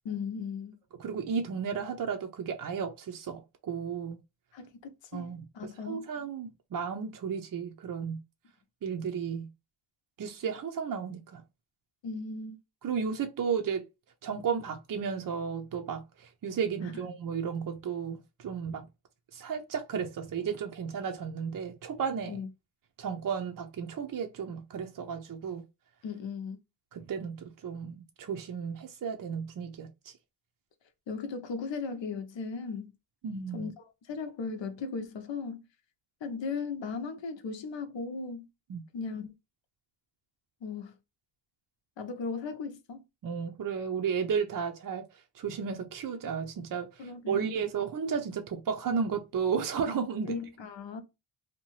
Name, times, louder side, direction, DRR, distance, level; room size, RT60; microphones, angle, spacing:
voice 1, 0.0-0.8 4.5-4.7 5.1-6.0 12.0-12.6 22.3-22.5 26.0-26.6 31.1-32.9 33.5-35.6 36.2-38.5 38.9-39.3 40.6-41.0 42.0-43.0 47.0-47.5 50.3-51.0, left 5 dB, 75° left, 0.7 m, -37 dB
voice 2, 1.0-4.2 5.1-8.2 8.8-9.5 10.2-11.4 12.8-13.9 14.2-18.9 19.3-22.4 23.0-25.7 26.9-30.1 33.2-33.7 38.7-38.8 43.2-45.0 45.3-50.3, right 6 dB, 45° right, 0.5 m, -33 dB
2.7 x 2.2 x 3.0 m
wide cardioid pair, 105°, 45 cm